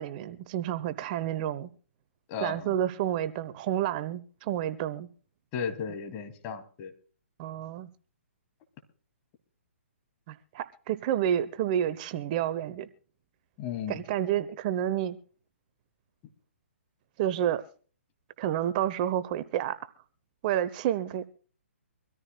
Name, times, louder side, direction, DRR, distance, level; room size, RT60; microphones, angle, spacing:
voice 1, 0.0-1.7 2.4-5.1 7.4-7.9 10.3-12.9 13.9-15.2 17.2-17.6 18.4-19.8 20.4-21.3, right 11 dB, 35° right, 0.8 m, -29 dB
voice 2, 2.3-2.7 5.5-6.9 13.6-14.0, left 6 dB, 30° left, 2.4 m, -35 dB
25.0 x 13.5 x 2.2 m
hypercardioid pair, 135°, 7 cm